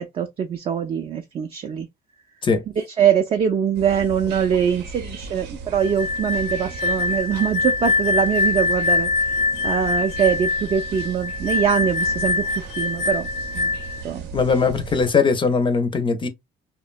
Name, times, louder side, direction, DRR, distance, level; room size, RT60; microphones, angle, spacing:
voice 1, 0.0-1.9 2.8-9.4 9.6-13.3 13.5-13.8 14.0-14.3, right 8 dB, 35° right, 0.4 m, -23 dB
sound 1, 3.7-15.1, right 5 dB, 85° right, 0.7 m, -36 dB
sound 2, 5.8-14.0, left 4 dB, 85° left, 0.8 m, -24 dB
voice 2, 14.3-16.3, left 5 dB, 30° left, 0.5 m, -20 dB
2.8 x 2.1 x 2.3 m
cardioid pair, 110°, 17 cm